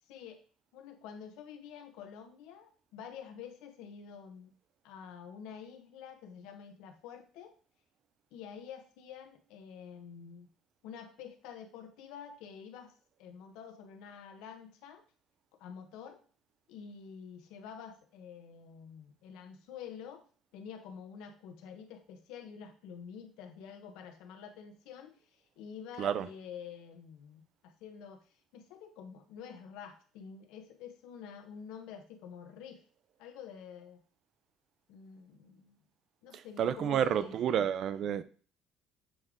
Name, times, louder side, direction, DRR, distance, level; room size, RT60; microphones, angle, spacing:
voice 1, 0.1-0.4 0.7-4.5 4.8-7.5 8.3-10.5 10.8-12.9 13.2-15.0 15.6-16.2 16.7-20.2 20.5-32.8 33.2-34.0 34.9-35.7 36.2-37.7, left 7 dB, 90° left, 1.0 m, -48 dB
voice 2, 36.3-38.2, right 9 dB, 50° right, 0.4 m, -30 dB
7.6 x 3.4 x 3.7 m
cardioid pair, 140°, 0 cm